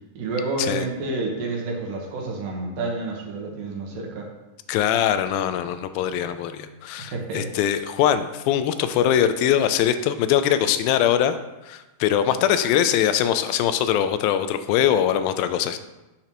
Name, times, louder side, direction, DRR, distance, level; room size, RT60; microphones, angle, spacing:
voice 1, 0.1-4.3 7.0-7.5 9.1-9.2, right 2 dB, 70° right, 0 dB, 2.8 m, -29 dB
voice 2, 4.7-11.4 11.6-15.8, left 10 dB, 85° left, 11 dB, 2.3 m, -22 dB
8.5 x 7.0 x 3.0 m, 1.0 s
omnidirectional pair, 4.2 m